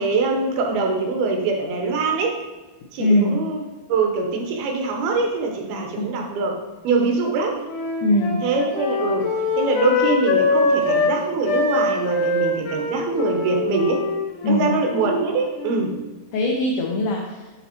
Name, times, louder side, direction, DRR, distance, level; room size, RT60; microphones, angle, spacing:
voice 1, 0.0-2.4 2.9-3.6 3.9-6.6 6.8-7.6 8.4-9.3 9.6-14.1 14.5-15.9, right 3 dB, 75° right, 2 dB, 2.6 m, -23 dB
voice 2, 3.0-3.4 5.8-6.1 8.0-8.4 14.4-14.7 16.3-17.5, left 1 dB, 90° left, 0 dB, 1.8 m, -21 dB
Wind instrument woodwind instrument, 7.1-11.2 11.5-15.9, left 3 dB, 65° left, 2.2 m, -24 dB
8.5 x 4.1 x 4.3 m, 1.2 s
omnidirectional pair, 4.6 m